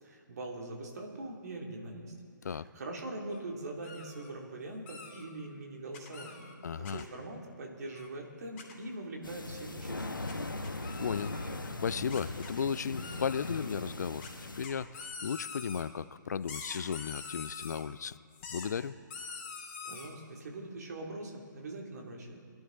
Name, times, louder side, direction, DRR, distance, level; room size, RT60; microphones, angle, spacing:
voice 1, 0.0-2.1 2.5-10.2 19.8-22.4, right 2 dB, 55° right, 0 dB, 2.9 m, -42 dB
sound 1, 3.3-3.4 3.8-4.3 4.9-5.2 5.9-6.5 6.8-7.0 7.9-8.1 8.6-8.7 10.3-10.4 10.6-11.6 12.1-12.5 13.0-13.7 14.2-14.3 14.6-15.8 16.4-17.8 18.3-18.7 19.1-20.1, left 5 dB, 35° left, 2.5 m, -45 dB
voice 2, 6.6-7.0 11.0-11.4 11.6-14.3 14.6-18.2 18.5-18.9, left 7 dB, 55° left, 18 dB, 0.4 m, -35 dB
sound 2, 9.2-14.7, left 2 dB, 85° left, 1.1 m, -39 dB
22.5 x 11.5 x 4.0 m, 2.4 s
figure-of-eight pair, 135°, 11 cm